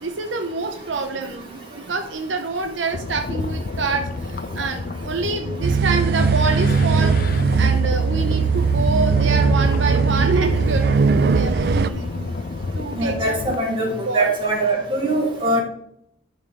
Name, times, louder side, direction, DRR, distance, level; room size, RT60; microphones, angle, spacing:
voice 1, 0.0-7.2 7.6-10.8 11.3-12.3 12.7-13.4 14.1-14.3, right 3 dB, 75° right, 5 dB, 0.7 m, -26 dB
sound 1, 2.9-13.5, left 3 dB, 50° left, 0.4 m, -29 dB
sound 2, 5.6-11.9, right 5 dB, 55° right, 0.4 m, -19 dB
voice 2, 12.9-15.6, right 2 dB, 25° right, -3 dB, 2.3 m, -22 dB
10.5 x 4.0 x 5.0 m, 0.73 s
head